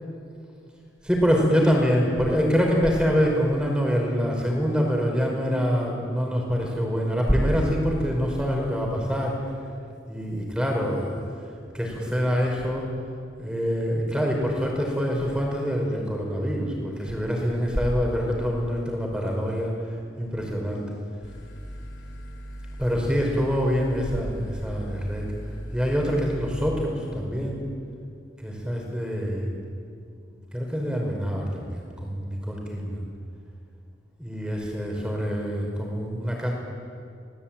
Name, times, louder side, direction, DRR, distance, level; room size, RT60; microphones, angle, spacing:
voice 1, 1.0-9.4 10.1-11.2 11.7-12.9 13.4-20.8 22.8-25.3 25.7-27.6 28.4-29.5 30.5-33.1 34.2-36.5, equal, 5° right, 0 dB, 5.1 m, -25 dB
sound 1, 21.2-26.7, equal, 75° left, 6.5 m, -39 dB
28.0 x 20.0 x 9.0 m, 2.5 s
head